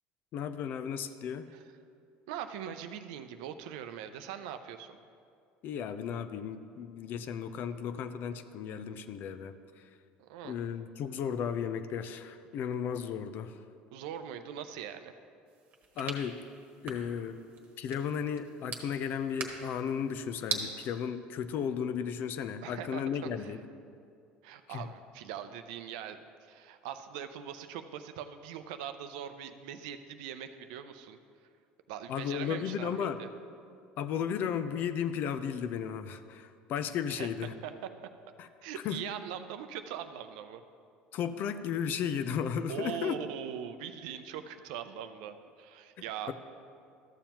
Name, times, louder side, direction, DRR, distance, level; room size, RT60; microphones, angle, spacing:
voice 1, 0.3-1.5 5.6-9.6 10.4-13.6 16.0-16.4 16.8-17.4 17.8-23.6 24.7-24.8 32.1-33.2 34.0-37.5 38.4-38.5 38.8-39.0 41.1-43.2 46.3-46.4, left 7 dB, 55° left, 11 dB, 0.5 m, -34 dB
voice 2, 2.3-5.0 10.2-10.6 13.9-15.1 22.6-23.1 23.4-23.5 24.4-26.2 26.5-31.2 31.9-33.3 37.1-37.7 38.6-40.6 42.7-46.3, right 9 dB, 85° right, 9 dB, 0.5 m, -41 dB
sound 1, 15.5-20.7, right 5 dB, 45° right, 1.2 m, -42 dB
13.0 x 7.1 x 2.9 m, 2.3 s
supercardioid pair, 105°, 4 cm